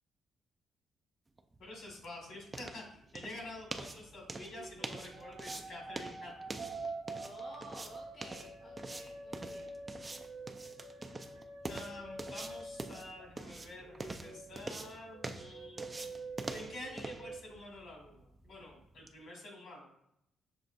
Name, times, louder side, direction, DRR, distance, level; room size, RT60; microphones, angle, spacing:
sound 1, 1.4-19.2, right 2 dB, 20° right, 0.4 m, -46 dB
voice 1, 1.6-6.7 11.7-16.0 16.5-19.9, left 2 dB, 70° left, 0 dB, 1.8 m, -48 dB
sound 2, 4.3-13.5 13.8-17.4, right 3 dB, 70° right, 0.9 m, -47 dB
voice 2, 7.1-9.8, left 1 dB, 55° left, -2 dB, 1.0 m, -53 dB
6.3 x 3.2 x 2.6 m, 0.77 s
cardioid pair, 90°, 0 cm